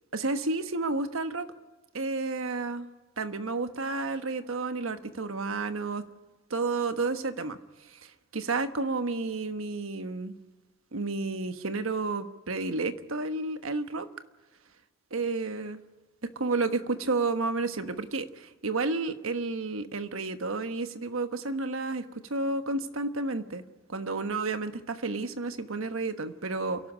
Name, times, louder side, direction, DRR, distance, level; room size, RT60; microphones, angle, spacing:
voice 1, 0.1-1.5 1.9-2.9 3.2-6.0 6.5-7.6 7.9-10.3 10.9-14.1 15.1-15.8 16.3-23.6 23.9-26.8, right 3 dB, 85° right, 10 dB, 1.3 m, -31 dB
28.5 x 12.0 x 10.0 m, 1.3 s
head